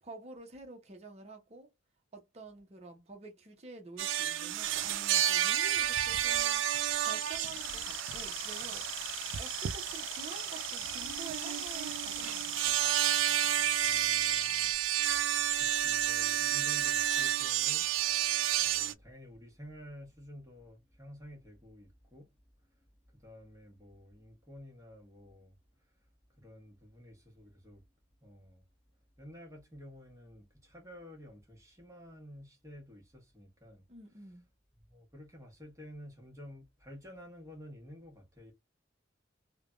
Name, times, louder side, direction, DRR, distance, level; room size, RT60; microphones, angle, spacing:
voice 1, 0.0-1.7 2.1-6.6 7.0-8.9 9.4-12.8 33.9-34.5, right 3 dB, 35° right, 0.7 m, -49 dB
sound 1, 4.0-18.9, right 11 dB, 80° right, 0.3 m, -31 dB
sound 2, 6.9-14.7, left 13 dB, 80° left, 0.3 m, -44 dB
voice 2, 13.7-14.8 15.1-22.3 23.2-25.5 26.4-27.8 28.2-28.6 29.2-33.8 34.9-38.5, equal, 15° right, 1.1 m, -51 dB
3.3 x 2.1 x 2.4 m
head